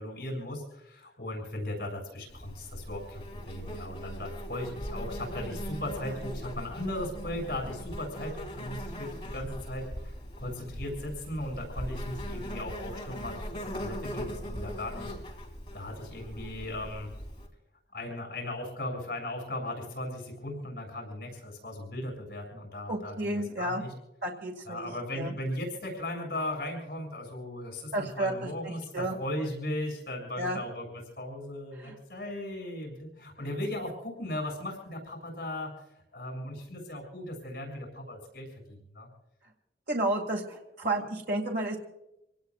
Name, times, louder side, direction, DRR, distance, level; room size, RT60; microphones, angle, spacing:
voice 1, 0.0-15.1 15.7-17.1 17.9-23.9 24.6-30.9 31.2-35.8 36.1-39.1, left 1 dB, 60° left, 1 dB, 6.8 m, -37 dB
Insect, 2.3-17.5, equal, 30° left, 3.4 m, -40 dB
voice 2, 22.9-23.8 24.2-24.9 25.1-25.3 27.9-29.1 30.4-30.6 31.7-32.0 39.9-41.8, right 1 dB, 65° right, 1 dB, 2.2 m, -32 dB
28.0 x 18.5 x 2.4 m, 0.86 s
head